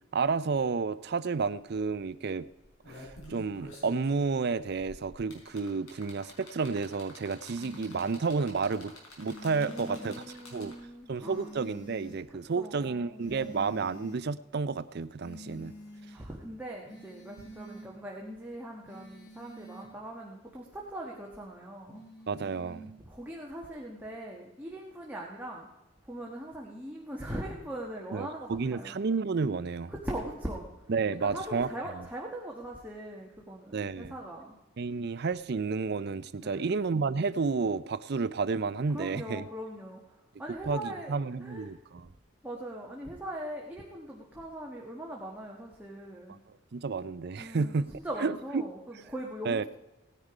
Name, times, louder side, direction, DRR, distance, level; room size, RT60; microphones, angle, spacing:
voice 1, 0.1-2.5 2.9-3.0 3.3-8.9 9.2-10.1 10.5-10.7 11.1-15.7 22.3-22.9 28.1-29.9 30.9-31.7 33.7-34.1 34.8-39.4 40.6-42.1 46.7-47.9 48.2-48.6 49.4-49.6, right 4 dB, 50° right, 16 dB, 0.5 m, -31 dB
sound 1, 2.5-11.0 12.1-12.2, left 1 dB, 85° left, 4.9 m, -49 dB
sound 2, 7.6-8.2 9.2-10.2 11.2-12.2 13.2-14.2 15.2-16.2 16.8-17.9 18.8-19.9 21.9-22.9, left 1 dB, 55° left, 3.1 m, -48 dB
voice 2, 9.6-11.5 12.6-13.5 16.1-22.0 23.1-25.7 26.0-29.0 29.9-30.7 31.2-34.6 36.4-36.7 38.9-40.0 40.4-41.7 42.4-46.4 47.4-49.7, right 1 dB, 10° right, -2 dB, 1.4 m, -41 dB
17.5 x 10.0 x 4.9 m, 1.0 s
head